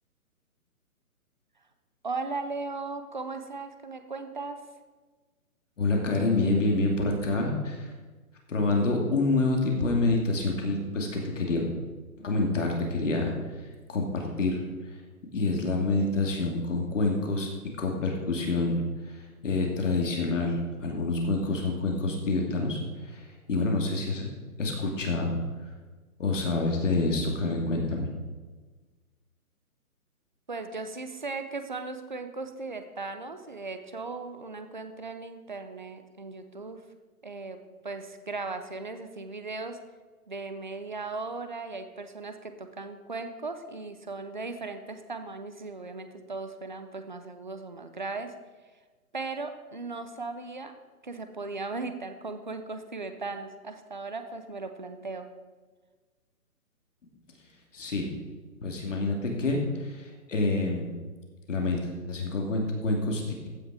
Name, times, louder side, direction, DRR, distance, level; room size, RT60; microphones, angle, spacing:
voice 1, 2.0-4.6 30.5-36.8 37.2-37.6 37.8-39.8 40.3-48.3 49.1-50.7 51.0-55.3, right 3 dB, 35° right, 8 dB, 0.6 m, -37 dB
voice 2, 5.8-7.9 8.5-11.7 12.2-13.3 13.9-14.6 14.9-15.0 15.3-17.5 17.8-18.8 19.0-24.3 24.6-25.3 26.2-28.1 57.7-58.1 58.6-60.9 61.5-63.5, left 2 dB, 55° left, 1 dB, 2.5 m, -27 dB
15.0 x 6.5 x 4.8 m, 1.3 s
hypercardioid pair, 175°, 45 cm